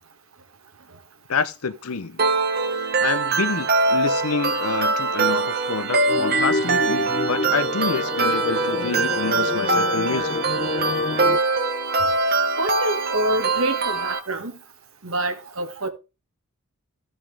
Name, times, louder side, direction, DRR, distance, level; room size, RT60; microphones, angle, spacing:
voice 1, 1.3-2.2 2.7-10.4, left 4 dB, 75° left, 0.8 m, -28 dB
sound 1, 2.2-14.2, right 3 dB, 45° right, 1.2 m, -23 dB
sound 2, 6.1-11.4, left 3 dB, 35° left, 0.4 m, -28 dB
voice 2, 12.6-14.5 15.0-15.9, right 1 dB, 65° right, 1.8 m, -26 dB
15.5 x 5.6 x 3.5 m
head